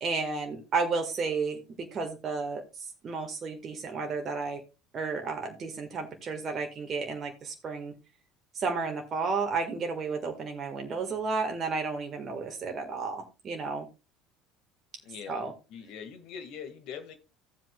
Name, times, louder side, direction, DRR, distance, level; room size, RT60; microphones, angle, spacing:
voice 1, 0.0-4.6 4.9-7.9 8.5-13.9 15.3-15.5, right 4 dB, 35° right, 1.6 m, -32 dB
voice 2, 15.0-17.2, left 7 dB, 55° left, 1.7 m, -43 dB
15.5 x 7.6 x 2.3 m
figure-of-eight pair, 65°, 0 cm